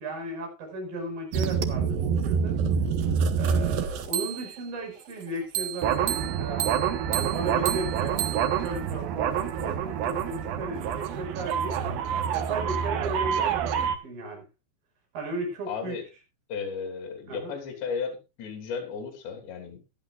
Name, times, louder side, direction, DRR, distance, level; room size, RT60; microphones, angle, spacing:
voice 1, 0.0-2.6 3.4-6.7 7.2-8.2 8.6-11.8 12.3-14.4 15.1-16.0 17.3-17.5, right 2 dB, 50° right, 1 dB, 7.1 m, -35 dB
sound 1, 1.3-4.7 5.5-14.0, right 7 dB, 65° right, 2.6 m, -27 dB
voice 2, 15.7-16.0 16.5-19.8, left 6 dB, 70° left, 4 dB, 5.2 m, -34 dB
17.0 x 12.0 x 2.5 m, 0.27 s
omnidirectional pair, 5.3 m